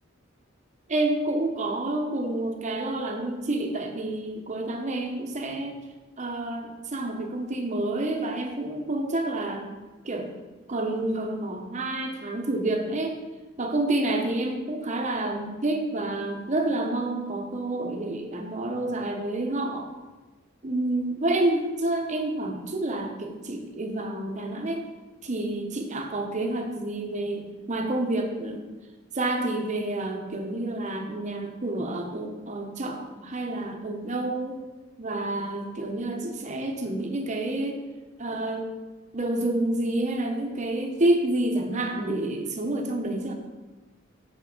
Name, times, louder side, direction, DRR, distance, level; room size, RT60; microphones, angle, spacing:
voice 1, 0.9-5.8 6.2-9.7 10.0-10.3 10.7-13.2 13.6-19.9 20.6-24.8 25.2-28.7 29.1-34.6 35.0-37.8 38.2-38.7 39.1-43.4, right 2 dB, 35° right, 3 dB, 0.8 m, -29 dB
5.8 x 5.2 x 3.9 m, 1.2 s
head